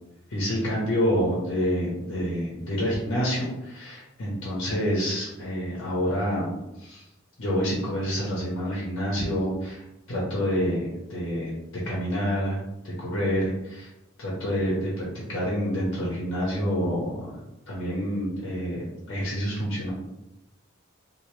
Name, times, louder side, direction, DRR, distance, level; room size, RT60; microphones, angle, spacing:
voice 1, 0.3-6.5 6.8-7.0 7.4-9.8 10.1-11.5 11.9-13.9 14.2-17.4 17.7-19.9, equal, 65° left, -5 dB, 0.8 m, -28 dB
2.9 x 2.6 x 3.1 m, 0.92 s
head